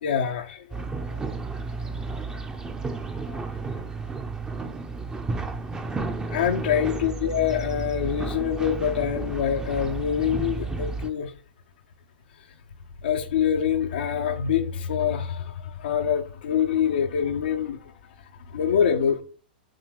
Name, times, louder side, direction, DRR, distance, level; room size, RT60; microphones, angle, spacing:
voice 1, 0.0-1.2 2.1-2.2 3.2-3.4 3.8-4.1 6.3-11.3 13.0-19.2, left 8 dB, 70° left, 0.7 m, -26 dB
sound 1, 0.7-11.1, right 3 dB, 15° right, 0.7 m, -32 dB
7.6 x 2.9 x 4.8 m
hypercardioid pair, 105°, 5 cm